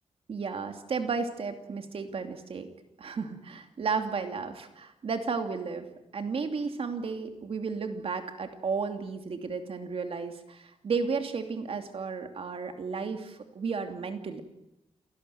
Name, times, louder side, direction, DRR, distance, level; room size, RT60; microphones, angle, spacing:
voice 1, 0.3-2.7 3.0-5.9 6.1-14.4, right 5 dB, 55° right, 6 dB, 2.8 m, -33 dB
29.5 x 19.0 x 9.3 m, 0.87 s
wide cardioid pair, 165°, 12 cm